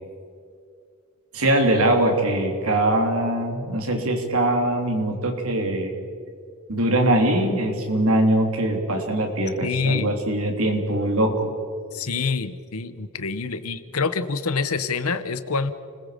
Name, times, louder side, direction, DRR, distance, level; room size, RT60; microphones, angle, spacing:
voice 1, 1.3-5.9 6.7-11.5, right 1 dB, 75° right, 3 dB, 3.4 m, -22 dB
voice 2, 9.6-10.1 11.9-15.7, left 4 dB, 85° left, 12 dB, 1.1 m, -26 dB
29.5 x 21.0 x 5.2 m, 2.4 s
head